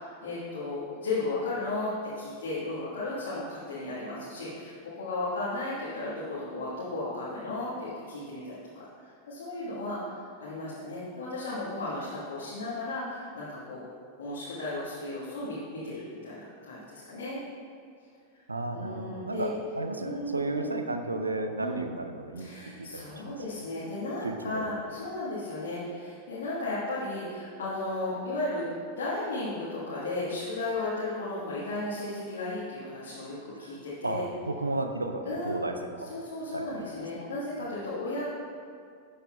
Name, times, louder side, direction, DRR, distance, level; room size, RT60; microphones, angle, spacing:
voice 1, 0.0-8.6 9.0-10.0 10.4-13.8 14.2-17.4 18.7-19.5 20.0-20.8 21.6-21.7 22.4-34.2 35.2-35.5 36.0-38.2, left 2 dB, 60° left, -9 dB, 1.5 m, -35 dB
voice 2, 18.5-22.5 22.8-23.4 24.2-24.7 33.6-33.8 34.0-36.2 36.5-36.9 37.6-37.7, right 2 dB, 80° right, 6 dB, 0.5 m, -34 dB
11.5 x 6.5 x 2.3 m, 2.2 s
figure-of-eight pair, 90°, 0 cm